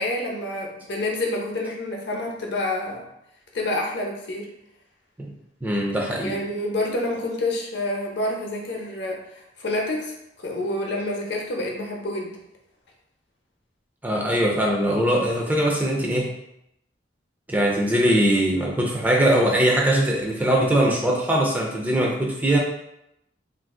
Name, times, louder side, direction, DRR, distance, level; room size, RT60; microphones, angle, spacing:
voice 1, 0.0-3.0 3.5-4.5 6.2-10.1 10.4-12.4, left 1 dB, 65° left, 0 dB, 0.7 m, -28 dB
voice 2, 5.6-6.4 14.0-16.3 17.5-22.6, right 1 dB, 10° right, -1 dB, 0.4 m, -21 dB
2.5 x 2.4 x 3.5 m, 0.81 s
head